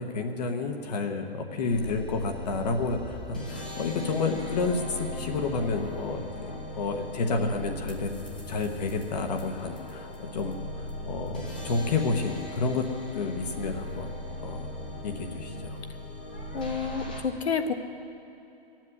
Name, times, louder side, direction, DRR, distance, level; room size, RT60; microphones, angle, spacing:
voice 1, 0.0-8.1 8.5-12.9 13.1-14.1 14.4-14.7 15.0-15.8, left 4 dB, 40° left, 4 dB, 1.1 m, -30 dB
sound 1, 1.7-17.2, left 1 dB, 10° left, 0.3 m, -38 dB
voice 2, 16.5-17.7, left 5 dB, 85° left, 7 dB, 1.4 m, -29 dB
16.5 x 7.5 x 9.7 m, 2.9 s
hypercardioid pair, 160°, 31 cm